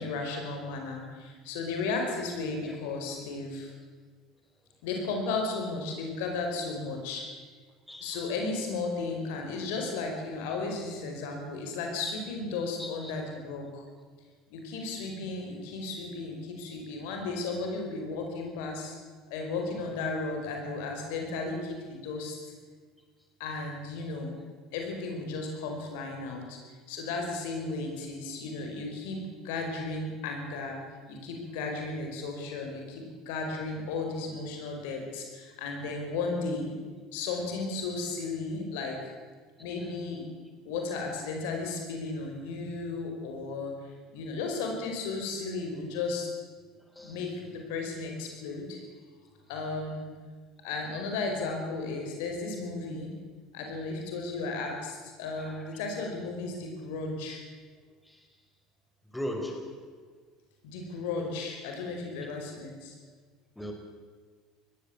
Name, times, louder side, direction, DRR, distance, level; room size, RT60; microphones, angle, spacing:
voice 1, 0.0-3.7 4.8-7.3 8.0-13.8 14.5-19.0 19.3-22.5 23.4-24.3 24.7-26.6 26.9-30.8 31.1-36.7 37.1-39.1 39.6-40.2 40.6-46.3 47.0-48.8 49.5-50.1 50.6-53.1 53.5-57.4 60.6-62.9, left 3 dB, 75° left, 2 dB, 5.1 m, -34 dB
voice 2, 7.9-8.2 12.8-13.1 39.6-39.7 46.9-47.2 55.4-55.7 58.1-58.2 59.1-59.9 63.6-63.7, equal, 5° left, 3 dB, 4.8 m, -38 dB
19.5 x 15.5 x 8.6 m, 1.5 s
hypercardioid pair, 75°, 0 cm